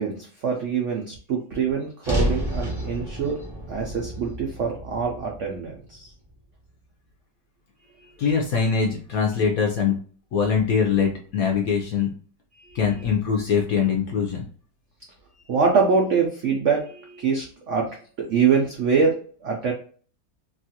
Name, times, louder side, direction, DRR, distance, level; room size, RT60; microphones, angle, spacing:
voice 1, 0.0-3.4 3.7-6.1 12.6-12.8 15.5-17.9 18.3-19.7, right 5 dB, 85° right, 0 dB, 0.6 m, -24 dB
sound 1, 2.0-6.3, right 1 dB, 5° right, 0.5 m, -30 dB
voice 2, 8.2-10.0 10.3-12.1 12.7-14.5, left 6 dB, 70° left, 1 dB, 0.8 m, -22 dB
3.0 x 2.4 x 2.7 m, 0.44 s
omnidirectional pair, 2.0 m